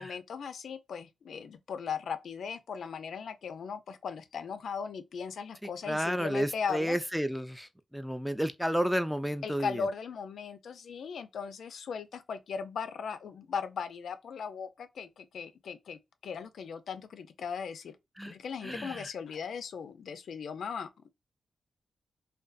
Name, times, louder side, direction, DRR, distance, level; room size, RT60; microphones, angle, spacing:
voice 1, 0.0-7.0 9.4-18.0 18.3-21.1, left 6 dB, 80° left, 0.3 m, -38 dB
voice 2, 5.9-9.8 18.2-18.3 18.6-19.1, equal, ahead, 0.3 m, -31 dB
2.5 x 2.2 x 2.3 m
cardioid pair, 70°, 0 cm